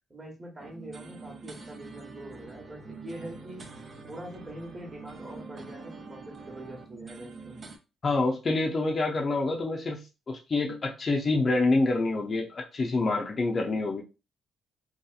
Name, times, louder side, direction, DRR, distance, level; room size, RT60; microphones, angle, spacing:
voice 1, 0.1-3.7 4.1-7.6, right 1 dB, 25° right, 0 dB, 1.0 m, -44 dB
sound 1, 0.6-7.8, right 4 dB, 45° right, 0.6 m, -45 dB
voice 2, 8.0-10.0 10.3-14.0, left 3 dB, 40° left, 0 dB, 0.5 m, -27 dB
2.8 x 2.3 x 2.3 m, 0.28 s
cardioid pair, 90°, 0 cm